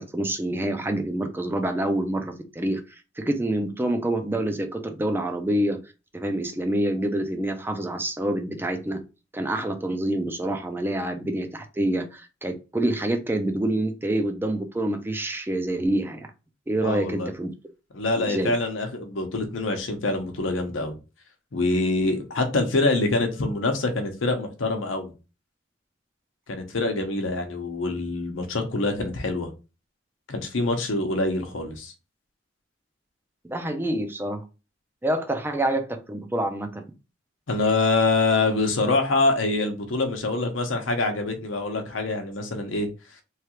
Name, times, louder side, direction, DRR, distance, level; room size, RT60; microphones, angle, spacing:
voice 1, 0.0-5.8 6.1-9.0 9.3-16.3 16.7-17.5 18.2-18.5 33.4-34.4 35.0-36.8, right 1 dB, 10° right, 0.4 m, -27 dB
voice 2, 16.8-17.3 17.9-21.0 21.5-25.1 26.5-29.5 30.3-31.9 37.5-42.9, left 2 dB, 90° left, 0.8 m, -25 dB
3.2 x 2.3 x 2.9 m
head